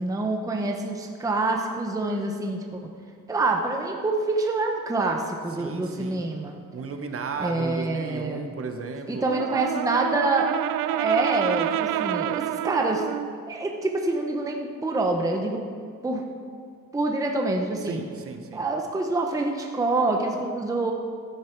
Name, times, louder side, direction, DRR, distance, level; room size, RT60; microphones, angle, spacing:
voice 1, 0.0-2.8 3.3-6.6 7.4-8.6 9.1-13.0 13.5-15.6 16.0-16.2 16.9-18.0 18.5-20.9, right 2 dB, 10° right, 2 dB, 0.8 m, -26 dB
voice 2, 5.6-6.3 6.7-9.3 17.9-18.7, right 4 dB, 45° right, 6 dB, 1.1 m, -34 dB
Brass instrument, 9.2-13.4, right 12 dB, 80° right, 0.5 m, -28 dB
16.0 x 10.0 x 4.6 m, 2.2 s
cardioid pair, 160°, 33 cm